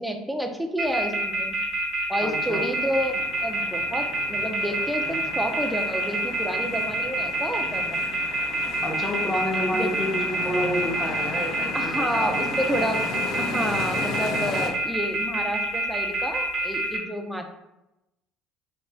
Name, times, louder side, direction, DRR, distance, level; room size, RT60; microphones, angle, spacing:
voice 1, 0.0-1.6 2.1-8.0 9.7-10.1 11.7-13.1 13.4-17.5, equal, 5° right, 4 dB, 0.5 m, -30 dB
sound 1, 0.8-17.0, right 1 dB, 35° right, 0.9 m, -27 dB
voice 2, 2.2-2.6 8.8-12.4, equal, 15° left, 0 dB, 1.0 m, -29 dB
sound 2, 2.3-14.7, left 3 dB, 60° left, 0.7 m, -36 dB
5.1 x 2.4 x 2.2 m, 0.91 s
hypercardioid pair, 65°, 0 cm